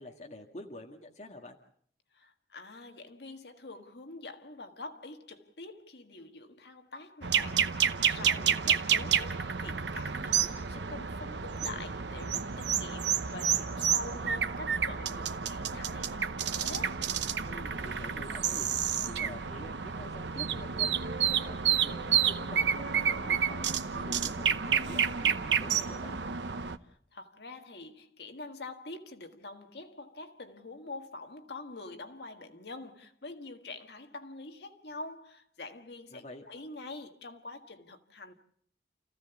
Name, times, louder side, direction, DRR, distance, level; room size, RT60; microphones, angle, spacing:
voice 1, 0.0-1.6 8.2-8.8 17.5-18.7 19.1-21.0 21.3-26.2 36.1-36.5, left 1 dB, 40° left, 1.8 m, -47 dB
voice 2, 2.1-8.5 8.9-17.1 26.8-38.3, left 2 dB, 70° left, 1.7 m, -45 dB
sound 1, 7.2-26.8, right 7 dB, 85° right, 0.9 m, -30 dB
29.5 x 15.5 x 7.0 m
head